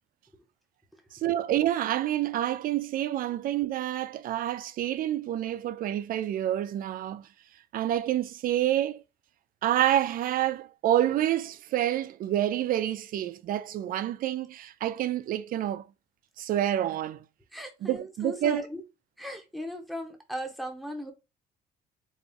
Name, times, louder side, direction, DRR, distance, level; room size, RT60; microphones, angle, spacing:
voice 1, 1.1-7.3 7.7-9.0 9.6-15.9 16.4-17.2 17.8-18.6, right 12 dB, 55° right, 0.4 m, -28 dB
voice 2, 17.5-18.8 19.2-21.1, equal, ahead, 0.9 m, -37 dB
4.2 x 2.3 x 3.6 m
cardioid pair, 110°, 17 cm